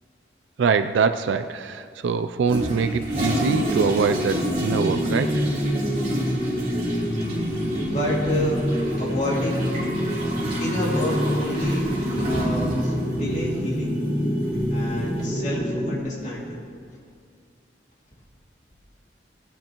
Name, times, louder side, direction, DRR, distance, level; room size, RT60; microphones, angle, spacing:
voice 1, 0.6-5.4, right 5 dB, 80° right, 9 dB, 0.4 m, -24 dB
Toilet flush, 2.5-15.2, right 1 dB, 35° right, 3.4 m, -31 dB
sound 1, 3.5-16.0, equal, 20° left, 1.5 m, -26 dB
voice 2, 7.8-8.6 9.0-9.6 10.6-13.9 14.7-16.6, equal, 40° left, -4 dB, 2.4 m, -29 dB
18.5 x 9.9 x 3.0 m, 2.2 s
head